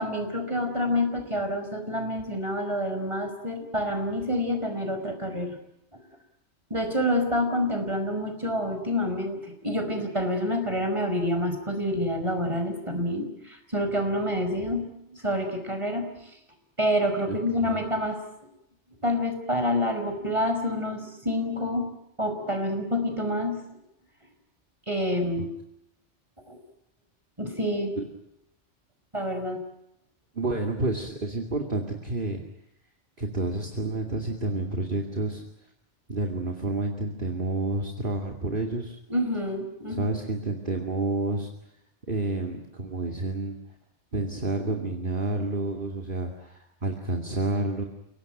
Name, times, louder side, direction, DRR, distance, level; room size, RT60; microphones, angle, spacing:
voice 1, 0.0-5.6 5.9-6.0 6.7-16.1 16.8-18.2 19.0-21.9 22.2-23.6 24.9-25.5 26.5-26.6 27.4-27.9 29.1-29.6 39.1-40.1, left 1 dB, 25° right, 6 dB, 5.4 m, -28 dB
voice 2, 30.3-32.4 33.2-35.4 36.1-39.0 39.9-41.5 42.1-43.5 44.1-47.8, right 2 dB, 50° right, 2 dB, 2.6 m, -29 dB
30.0 x 18.5 x 9.2 m, 0.83 s
omnidirectional pair, 1.2 m